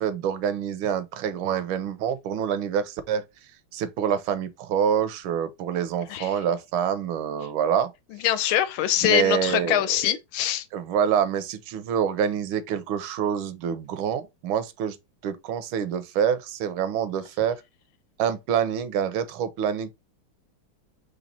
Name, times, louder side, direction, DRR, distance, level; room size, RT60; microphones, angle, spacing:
voice 1, 0.0-3.2 3.7-7.9 9.0-10.2 10.7-15.0 15.2-17.6 18.2-19.9, right 8 dB, 80° right, 1.4 m, -26 dB
voice 2, 8.2-10.6, left 11 dB, 80° left, 1.4 m, -23 dB
4.1 x 3.2 x 4.0 m
omnidirectional pair, 2.3 m